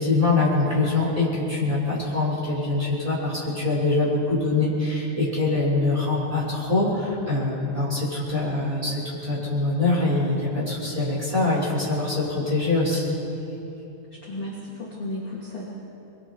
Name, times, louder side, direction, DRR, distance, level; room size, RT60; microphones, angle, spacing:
voice 1, 0.0-13.1, left 2 dB, 5° right, -6 dB, 5.6 m, -24 dB
voice 2, 14.2-15.6, left 1 dB, 35° left, -6 dB, 2.9 m, -34 dB
28.0 x 22.5 x 4.9 m, 2.9 s
omnidirectional pair, 5.8 m